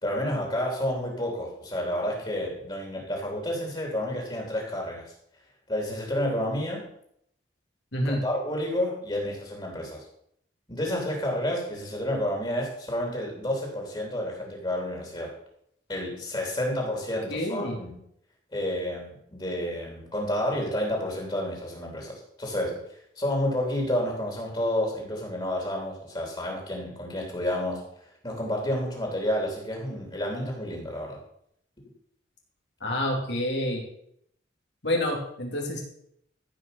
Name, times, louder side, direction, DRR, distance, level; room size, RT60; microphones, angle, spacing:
voice 1, 0.0-5.1 5.7-6.9 8.0-10.0 10.7-15.3 15.9-18.0 18.5-22.8 23.2-31.2, left 1 dB, 25° left, 0 dB, 3.0 m, -30 dB
voice 2, 7.9-8.2 17.3-17.8 32.8-33.8 34.8-35.8, left 1 dB, 70° left, 0 dB, 3.4 m, -28 dB
14.5 x 5.5 x 6.8 m, 0.71 s
head